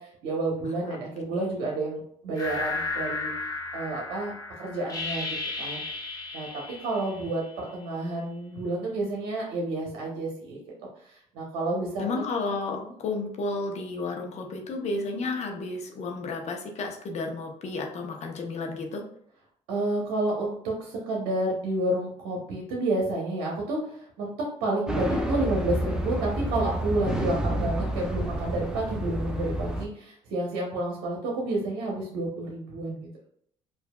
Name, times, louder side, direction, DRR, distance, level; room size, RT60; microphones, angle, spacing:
voice 1, 0.0-3.3 3.7-5.8 6.3-6.5 6.8-10.6 11.0-12.1 12.7-12.9 19.7-24.3 24.6-33.1, right 2 dB, 90° right, -2 dB, 0.8 m, -30 dB
voice 2, 1.3-1.7 12.0-19.0, left 3 dB, 55° left, 2 dB, 0.8 m, -32 dB
sound 1, 2.4-7.8, left 3 dB, 25° left, 1.0 m, -34 dB
sound 2, 24.9-29.9, right 1 dB, 5° right, 0.6 m, -29 dB
4.6 x 2.5 x 2.3 m, 0.67 s
supercardioid pair, 75°, 13 cm